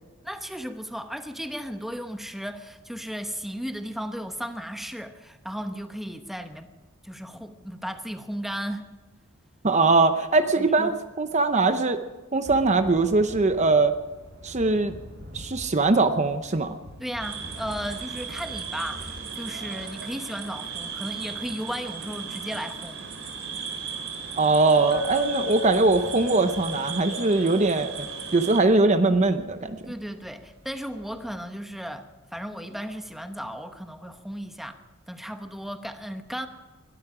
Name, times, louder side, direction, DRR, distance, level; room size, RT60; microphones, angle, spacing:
voice 1, 0.2-6.7 7.0-8.9 10.6-10.9 17.0-23.1 29.9-34.8 35.1-36.5, equal, ahead, 7 dB, 1.0 m, -35 dB
voice 2, 9.6-12.0 12.3-13.9 14.4-14.9 15.3-16.8 24.4-27.9 28.3-29.9, right 3 dB, 35° right, 9 dB, 0.8 m, -21 dB
Thunder / Rain, 12.4-31.5, equal, 55° right, 7.4 m, -48 dB
sound 1, 17.2-28.6, right 6 dB, 80° right, 4.3 m, -36 dB
Chink clink, 24.9-29.1, left 5 dB, 60° left, 0.7 m, -36 dB
22.0 x 13.0 x 5.0 m, 1.2 s
head